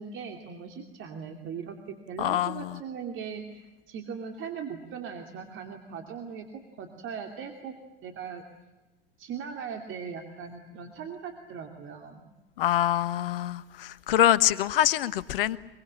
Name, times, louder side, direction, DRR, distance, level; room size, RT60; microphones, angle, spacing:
voice 1, 0.0-3.6 3.9-7.7 8.0-8.4 9.2-12.2, right 6 dB, 45° right, 2.8 m, -39 dB
voice 2, 2.2-2.8 12.6-15.6, left 12 dB, 70° left, 1.2 m, -25 dB
24.0 x 24.0 x 8.7 m
hypercardioid pair, 80°, 29 cm